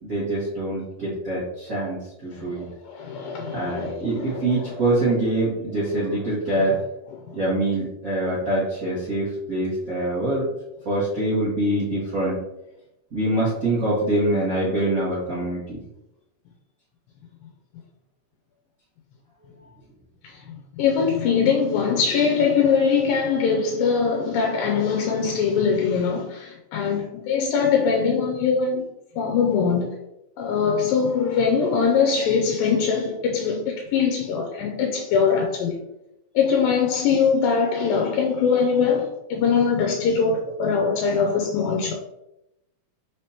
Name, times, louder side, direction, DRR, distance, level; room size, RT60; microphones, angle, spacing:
voice 1, 0.0-2.6 3.5-6.8 7.3-10.5 10.8-12.4 13.1-15.8, right 1 dB, 45° right, 1.0 m, -24 dB
voice 2, 2.3-4.8 6.5-6.8 7.1-7.3 20.2-28.8 29.2-29.9 30.4-35.8 36.4-41.9, left 6 dB, 90° left, 2.4 m, -22 dB
5.5 x 3.4 x 2.8 m
omnidirectional pair, 3.9 m